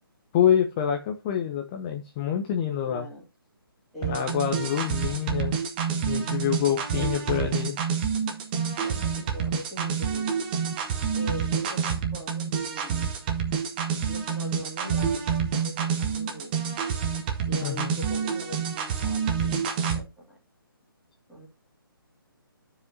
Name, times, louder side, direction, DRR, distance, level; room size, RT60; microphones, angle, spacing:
voice 1, 0.3-3.1 4.0-5.6 6.1-7.8 17.6-18.0, left 9 dB, 20° left, 4 dB, 0.6 m, -26 dB
voice 2, 2.9-3.3 3.9-5.5 6.6-7.1 8.6-10.4 11.1-13.1 14.1-15.2 15.5-16.5 17.4-20.4 21.3-21.5, equal, ahead, -6 dB, 2.5 m, -41 dB
sound 1, 4.0-20.0, right 6 dB, 25° right, 1.1 m, -28 dB
13.0 x 4.9 x 2.7 m, 0.26 s
figure-of-eight pair, 140°, 12 cm